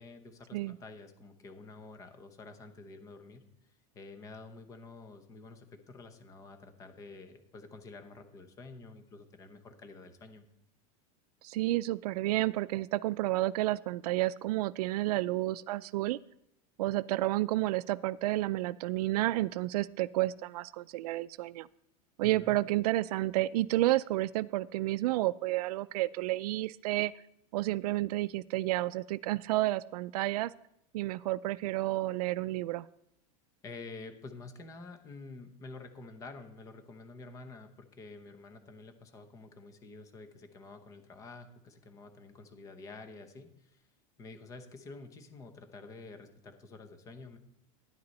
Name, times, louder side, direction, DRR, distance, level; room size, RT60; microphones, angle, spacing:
voice 1, 0.0-10.5 22.2-22.6 33.6-43.8 44.2-47.4, left 3 dB, 15° left, 8 dB, 0.8 m, -49 dB
voice 2, 11.4-16.2 16.8-21.7 22.2-27.1 27.5-30.5 30.9-32.9, right 17 dB, 85° right, 18 dB, 0.4 m, -30 dB
10.5 x 9.5 x 4.1 m, 0.79 s
supercardioid pair, 180°, 19 cm